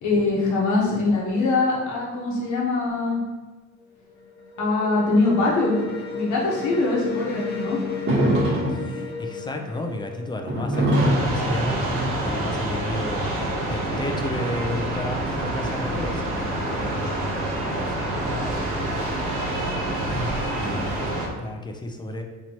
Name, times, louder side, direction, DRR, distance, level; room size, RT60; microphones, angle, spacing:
voice 1, 0.0-3.2 4.6-5.8 6.1-7.8, left 3 dB, 70° left, -4 dB, 1.1 m, -22 dB
sound 1, 3.8-11.5, left 6 dB, 35° left, 1.1 m, -34 dB
sound 2, 8.1-9.0 10.5-12.9 13.9-14.9, right 1 dB, 45° right, 1.1 m, -23 dB
voice 2, 8.7-19.1 20.0-21.0 21.4-22.2, left 1 dB, 15° left, 4 dB, 0.5 m, -33 dB
sound 3, 10.9-21.3, right 1 dB, 80° right, 1.3 m, -27 dB
4.0 x 3.1 x 2.9 m, 1.3 s
cardioid pair, 90°, 30 cm